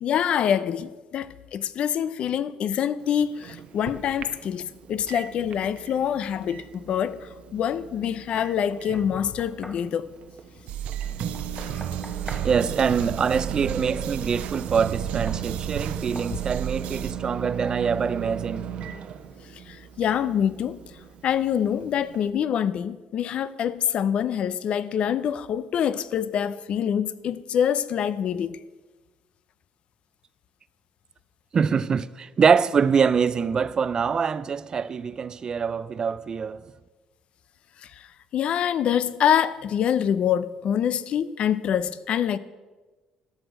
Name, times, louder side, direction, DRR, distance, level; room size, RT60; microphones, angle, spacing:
voice 1, 0.0-10.1 11.7-11.8 16.3-16.4 19.5-20.8 21.2-28.6 37.8-38.1 38.3-42.4, left 9 dB, 55° left, 0.5 m, -25 dB
Microwave oven, 3.0-22.3, right 8 dB, 55° right, 0.8 m, -38 dB
Knock, 8.7-9.9 11.3-12.5 14.5-14.7 15.3-15.5 16.2-16.4, left 1 dB, 10° left, 1.1 m, -43 dB
sound 1, 10.7-17.1, right 10 dB, 80° right, 0.6 m, -33 dB
voice 2, 12.4-18.7 31.5-36.6, right 6 dB, 35° right, 0.4 m, -24 dB
12.5 x 6.2 x 6.3 m
cardioid pair, 115°, 2 cm